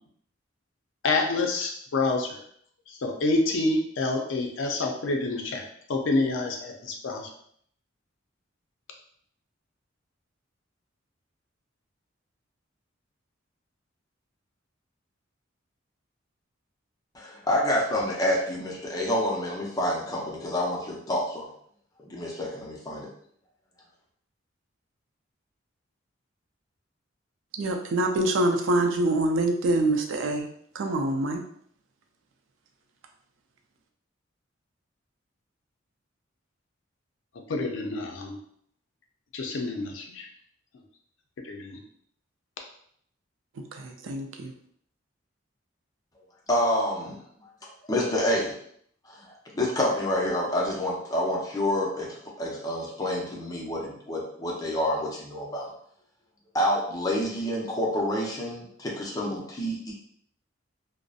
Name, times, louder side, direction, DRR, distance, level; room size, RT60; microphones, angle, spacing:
voice 1, 1.0-2.4 2.9-7.3 37.5-38.4 39.3-40.3 41.4-41.8, left 2 dB, 70° left, 2 dB, 0.4 m, -28 dB
voice 2, 17.1-21.5 22.1-23.1 46.5-47.5 47.8-48.6 49.1-55.7 56.5-59.9, left 1 dB, 20° left, -3 dB, 0.5 m, -28 dB
voice 3, 27.6-30.5 30.7-31.4 43.7-44.5, right 2 dB, 75° right, 4 dB, 0.4 m, -25 dB
2.6 x 2.0 x 2.3 m, 0.65 s
head